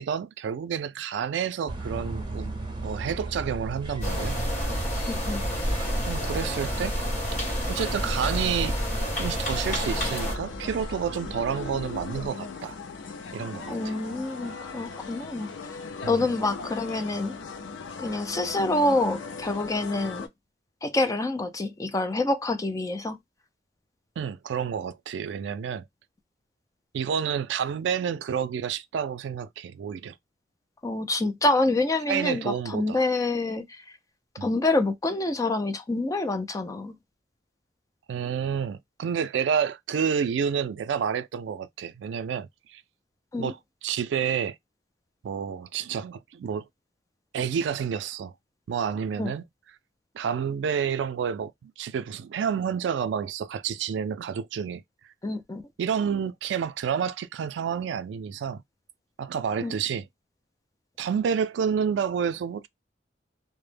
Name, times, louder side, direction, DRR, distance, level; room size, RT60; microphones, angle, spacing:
voice 1, 0.0-4.4 6.1-7.0 7.7-8.7 9.2-12.8 13.3-13.9 16.0-16.3 24.2-25.9 26.9-30.1 32.1-33.0 34.4-34.5 38.1-42.8 43.4-44.6 45.2-46.6 47.3-48.3 48.7-49.4 50.1-54.8 55.8-58.6 59.2-60.0 61.0-62.7, right 7 dB, 70° right, 0.3 m, -29 dB
sound 1, 1.7-12.3, right 1 dB, 25° right, 0.6 m, -37 dB
sound 2, 4.0-10.4, equal, 45° left, 1.1 m, -29 dB
voice 2, 5.1-5.4 13.7-15.5 16.1-17.3 18.0-20.3 20.8-23.2 30.8-33.6 34.4-36.9 43.3-43.5 49.2-49.3 55.2-55.6 59.6-59.7, left 2 dB, 20° left, 0.3 m, -27 dB
sound 3, 9.6-20.3, left 4 dB, 90° left, 0.5 m, -38 dB
2.1 x 2.0 x 3.2 m
head